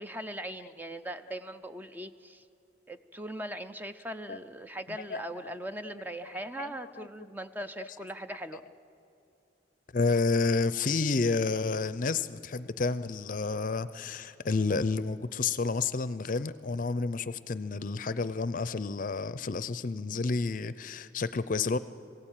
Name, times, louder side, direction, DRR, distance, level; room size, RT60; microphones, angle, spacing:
voice 1, 0.0-2.4 2.9-8.6, right 1 dB, 10° right, 9 dB, 0.5 m, -40 dB
voice 2, 4.9-5.5 6.6-7.1 7.8-7.9 9.9-21.8, left 4 dB, 50° left, 15 dB, 0.5 m, -30 dB
20.5 x 16.5 x 9.0 m, 2.7 s
head